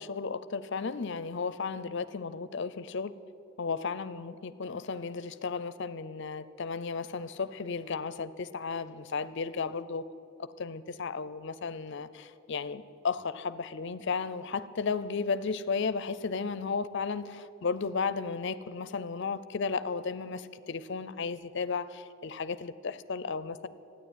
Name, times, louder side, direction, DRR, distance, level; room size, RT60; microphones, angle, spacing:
voice 1, 0.0-3.1 3.6-10.0 10.4-23.7, left 5 dB, 55° left, 15 dB, 0.5 m, -34 dB
13.5 x 9.7 x 9.1 m, 2.9 s
head